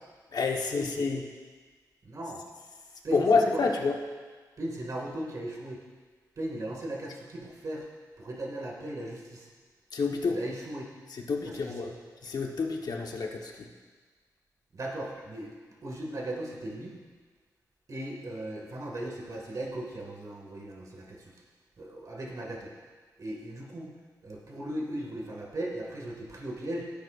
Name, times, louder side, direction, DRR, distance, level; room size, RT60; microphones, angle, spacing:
voice 1, 0.3-1.2 3.1-4.0 9.9-10.4 11.1-11.9 12.2-13.7, left 4 dB, 70° left, 1 dB, 1.1 m, -28 dB
voice 2, 2.0-2.4 3.0-3.7 4.6-5.8 6.4-7.9 8.2-9.5 10.3-10.9 11.4-11.9 14.7-15.5 15.8-17.0 17.9-21.4 21.8-22.7 23.2-23.9 24.2-26.9, right 1 dB, 50° right, -1 dB, 2.0 m, -37 dB
15.5 x 8.3 x 2.5 m, 1.4 s
wide cardioid pair, 95°, 7 cm